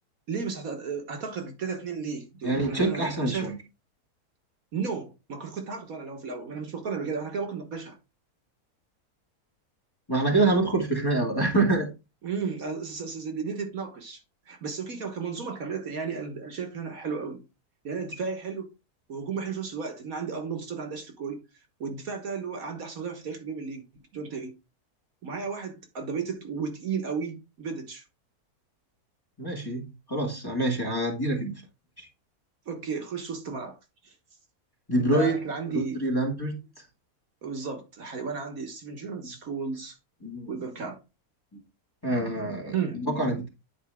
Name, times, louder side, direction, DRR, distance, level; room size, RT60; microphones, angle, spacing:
voice 1, 0.3-3.5 4.7-8.0 12.2-14.2 14.5-17.4 17.8-18.7 19.1-21.4 21.8-24.5 25.2-28.0 32.7-33.8 34.0-34.1 35.0-36.0 37.4-39.9 40.5-41.0 42.7-43.0, right 5 dB, 65° right, 1.7 m, -34 dB
voice 2, 2.4-3.6 10.1-11.9 29.4-31.5 32.0-32.1 34.9-35.4 35.7-36.6 40.2-40.6 42.0-43.5, right 2 dB, 15° left, 2.0 m, -26 dB
10.0 x 4.6 x 3.5 m
omnidirectional pair, 1.7 m